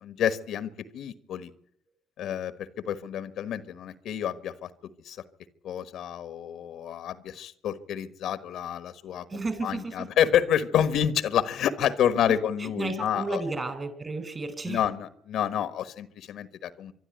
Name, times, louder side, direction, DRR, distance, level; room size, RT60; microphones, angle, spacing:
voice 1, 0.0-1.5 2.2-4.7 5.0-5.2 5.6-13.4 14.7-16.9, left 9 dB, 70° left, 14 dB, 1.3 m, -29 dB
voice 2, 9.3-10.1 12.3-14.8, right 3 dB, 30° right, 12 dB, 4.8 m, -33 dB
25.0 x 12.0 x 9.2 m, 0.69 s
supercardioid pair, 70°, 0 cm